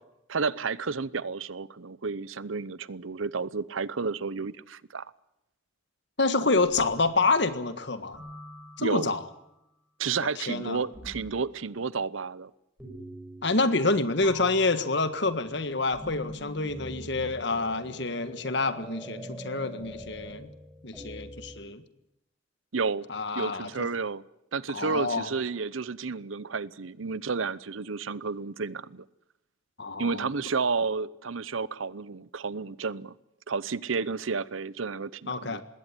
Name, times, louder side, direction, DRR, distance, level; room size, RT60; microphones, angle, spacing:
voice 1, 0.3-5.1 8.8-9.1 10.0-12.5 22.7-23.1 23.3-24.2 24.5-29.0 30.0-33.1 33.5-35.6, right 4 dB, 90° right, 20 dB, 0.8 m, -31 dB
voice 2, 6.2-8.2 8.8-9.2 10.4-10.8 13.4-20.5 20.8-21.8 23.1-23.9 24.7-25.3 29.8-30.2 35.3-35.6, left 3 dB, 60° left, 12 dB, 1.7 m, -27 dB
sound 1, 6.5-7.4 8.1-9.2 10.9-11.5 12.8-13.9 14.2-21.6, equal, 5° right, 6.8 m, -44 dB
20.5 x 17.5 x 9.8 m, 0.87 s
head